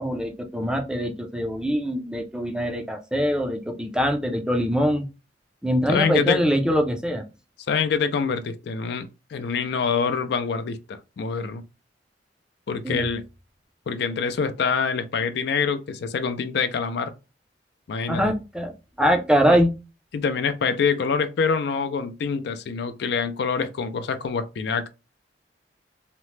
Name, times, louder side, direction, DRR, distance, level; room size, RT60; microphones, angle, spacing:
voice 1, 0.0-5.1 5.6-7.3 12.8-13.1 18.1-18.7 19.0-19.7, equal, 5° right, 0.4 m, -23 dB
voice 2, 5.9-6.4 7.7-11.6 12.7-13.2 13.9-17.1 17.9-18.3 20.1-24.9, left 5 dB, 65° left, 0.4 m, -25 dB
2.9 x 2.1 x 3.1 m
head